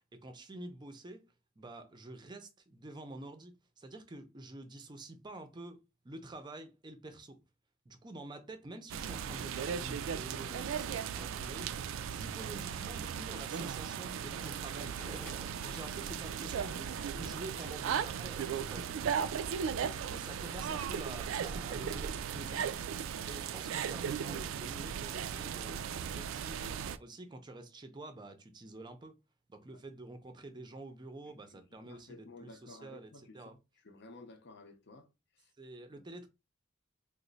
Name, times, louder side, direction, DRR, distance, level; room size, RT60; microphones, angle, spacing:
voice 1, 0.1-1.3 1.6-5.8 6.0-7.4 7.9-15.2 15.6-29.1 29.5-33.5 35.6-36.3, right 2 dB, 20° right, 0.5 m, -48 dB
sound 1, 8.9-27.0, right 7 dB, 85° right, 0.3 m, -37 dB
sound 2, 12.7-18.0, equal, 10° left, 0.7 m, -56 dB
voice 2, 31.2-35.5 35.9-36.0, left 3 dB, 60° left, 0.6 m, -55 dB
3.0 x 2.1 x 3.9 m
head